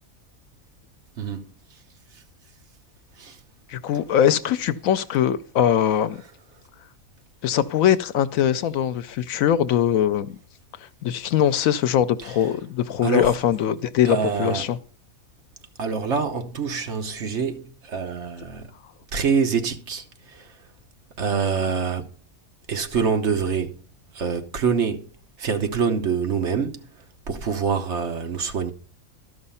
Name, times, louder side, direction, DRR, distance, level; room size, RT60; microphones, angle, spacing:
voice 1, 3.7-6.2 7.4-10.4 11.0-14.8, left 10 dB, 85° left, 1.1 m, -21 dB
voice 2, 13.0-13.3 14.1-14.6 15.8-17.6 17.9-18.7 19.1-20.0 21.2-22.0 22.7-23.8 24.1-25.0 25.4-26.8 27.3-28.7, right 5 dB, 60° right, 1.2 m, -25 dB
13.0 x 5.6 x 5.5 m
omnidirectional pair, 1.4 m